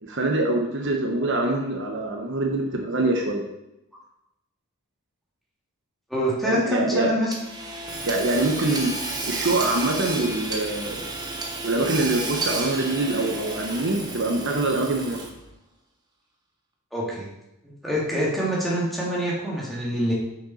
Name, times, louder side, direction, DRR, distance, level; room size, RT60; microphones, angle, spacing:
voice 1, 0.0-3.5 6.4-7.1 8.1-11.1 11.6-15.3, right 2 dB, 55° right, 2 dB, 1.1 m, -24 dB
voice 2, 6.1-7.3 16.9-17.3 17.6-20.1, equal, ahead, -6 dB, 2.3 m, -25 dB
Hammer / Sawing, 7.3-15.5, right 2 dB, 20° right, 1.1 m, -32 dB
6.5 x 6.0 x 5.6 m, 0.89 s
head